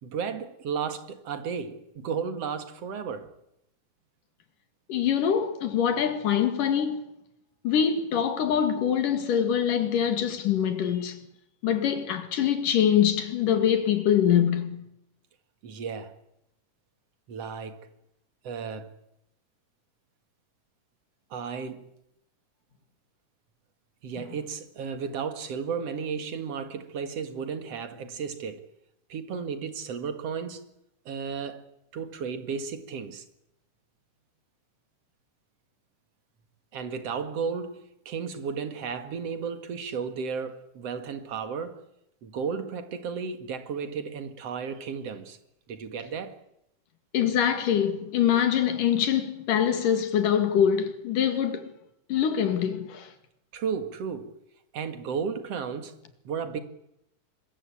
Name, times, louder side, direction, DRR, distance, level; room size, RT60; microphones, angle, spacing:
voice 1, 0.0-3.3 15.6-16.1 17.3-17.8 18.4-18.9 21.3-21.9 24.0-28.6 29.1-30.6 31.1-31.6 31.9-33.2 36.7-41.8 42.2-45.4 45.7-46.4 53.5-54.3 54.7-55.9 56.2-56.6, right 6 dB, 55° right, 2.8 m, -33 dB
voice 2, 4.9-7.0 7.6-11.3 11.6-14.9 47.1-51.7 52.1-53.1, left 9 dB, 85° left, 3.8 m, -24 dB
25.0 x 21.5 x 8.6 m
omnidirectional pair, 3.7 m